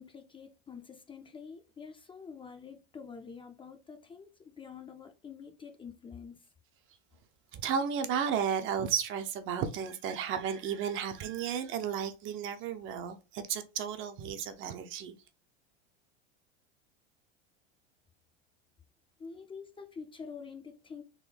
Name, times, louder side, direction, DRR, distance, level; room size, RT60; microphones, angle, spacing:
voice 1, 0.0-6.5 19.2-21.0, left 6 dB, 15° left, 0.4 m, -47 dB
voice 2, 7.5-15.2, right 7 dB, 40° right, 0.6 m, -33 dB
3.7 x 2.1 x 3.3 m
hypercardioid pair, 105°, 31 cm